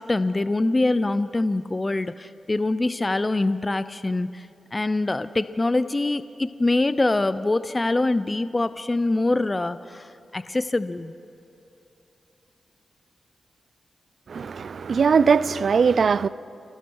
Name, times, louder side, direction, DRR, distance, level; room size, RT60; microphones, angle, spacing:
voice 1, 0.0-11.1, left 2 dB, 30° left, 0.7 m, -24 dB
voice 2, 14.3-16.3, right 5 dB, 65° right, 0.5 m, -20 dB
30.0 x 19.5 x 4.8 m
cardioid pair, 50°, 0 cm